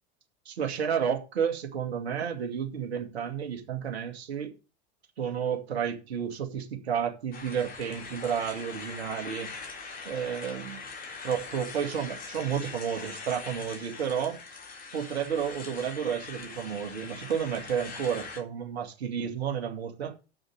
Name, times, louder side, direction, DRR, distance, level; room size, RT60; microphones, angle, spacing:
voice 1, 0.5-4.5 5.2-9.5 10.1-10.8 11.2-14.4 14.9-20.1, right 8 dB, 70° right, 2.2 m, -31 dB
sound 1, 7.3-18.4, left 4 dB, 25° left, 3.4 m, -42 dB
7.6 x 6.3 x 7.8 m
figure-of-eight pair, 80°, 33 cm